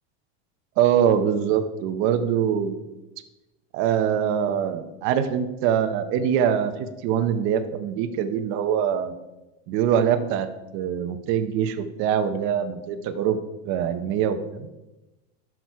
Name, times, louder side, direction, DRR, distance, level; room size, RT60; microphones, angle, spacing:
voice 1, 0.8-2.8 3.7-9.1 9.7-10.5 10.7-13.4 13.7-14.7, right 8 dB, 40° right, 8 dB, 0.8 m, -23 dB
10.5 x 6.1 x 4.7 m, 1.0 s
supercardioid pair, 165°, 32 cm